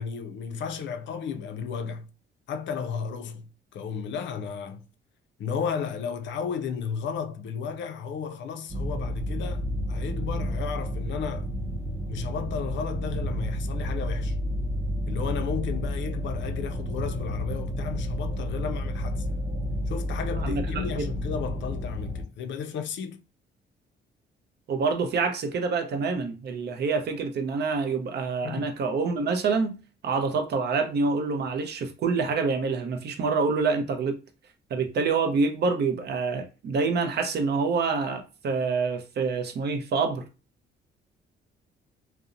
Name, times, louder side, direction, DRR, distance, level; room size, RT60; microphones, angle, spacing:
voice 1, 0.0-2.1 2.5-3.5 3.7-4.8 5.4-11.5 12.1-14.4 15.1-19.3 19.9-23.2 28.4-28.7, left 6 dB, 70° left, 0.4 m, -33 dB
sound 1, 8.7-22.2, equal, 15° right, 0.7 m, -31 dB
voice 2, 20.4-21.1 24.7-34.2 34.7-40.2, right 4 dB, 55° right, 0.5 m, -27 dB
2.7 x 2.0 x 2.4 m
cardioid pair, 90°, 20 cm